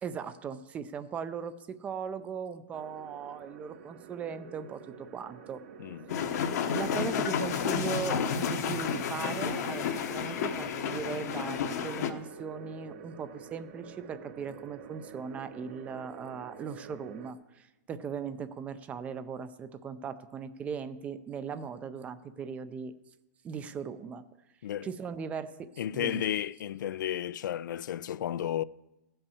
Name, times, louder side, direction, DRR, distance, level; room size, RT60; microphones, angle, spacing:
voice 1, 0.0-5.6 6.7-22.9 23.4-24.2 24.8-26.2, right 6 dB, 15° right, 0.4 m, -39 dB
sound 1, 2.7-17.3, right 6 dB, 40° right, 0.9 m, -48 dB
voice 2, 5.8-6.3 24.6-24.9 25.8-28.6, left 11 dB, 75° left, 0.4 m, -33 dB
sound 2, 6.1-12.1, left 7 dB, 55° left, 1.0 m, -31 dB
16.0 x 5.5 x 7.0 m
hypercardioid pair, 165°, 10 cm